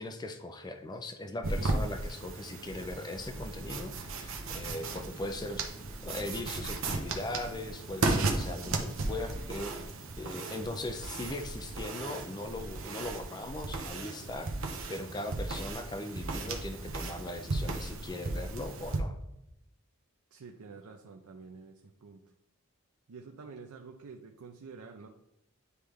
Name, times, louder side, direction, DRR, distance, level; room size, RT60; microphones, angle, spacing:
voice 1, 0.0-5.6 6.0-9.7 10.2-14.5 14.9-19.2, left 2 dB, 20° left, 7 dB, 0.4 m, -39 dB
sound 1, 1.4-19.0, right 2 dB, 60° right, 0.8 m, -35 dB
voice 2, 20.3-22.2 23.1-25.1, right 4 dB, 90° right, 3 dB, 0.5 m, -48 dB
9.5 x 3.2 x 3.5 m, 0.85 s
head